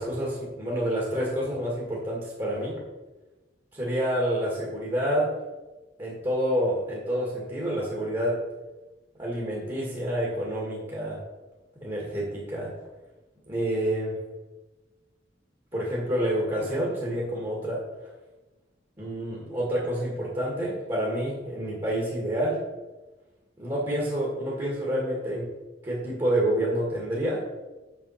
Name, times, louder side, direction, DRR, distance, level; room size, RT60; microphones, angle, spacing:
voice 1, 0.0-2.8 3.7-5.3 6.0-8.4 9.2-11.2 11.8-12.7 13.5-14.2 15.7-17.8 19.0-22.6 23.6-25.5 25.8-27.4, right 1 dB, 25° right, -4 dB, 2.0 m, -28 dB
7.3 x 7.1 x 5.7 m, 1.2 s
head